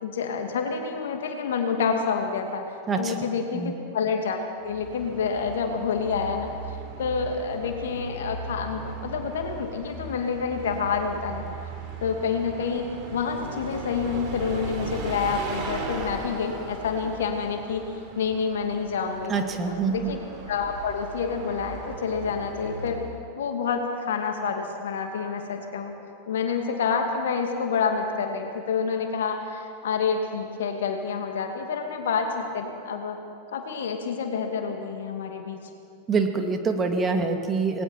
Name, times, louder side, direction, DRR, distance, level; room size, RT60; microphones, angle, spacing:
voice 1, 0.0-2.6 3.0-6.5 7.0-11.4 12.0-19.3 19.7-20.2 20.5-23.0 23.3-25.9 26.3-33.2 33.5-35.6, left 5 dB, 60° left, 4 dB, 2.6 m, -28 dB
Bus, 4.6-23.2, right 3 dB, 40° right, 4.6 m, -38 dB
voice 2, 19.3-20.1 36.1-37.8, right 4 dB, 20° right, 5 dB, 2.1 m, -25 dB
28.0 x 20.5 x 4.5 m, 2.5 s
figure-of-eight pair, 90°, 0 cm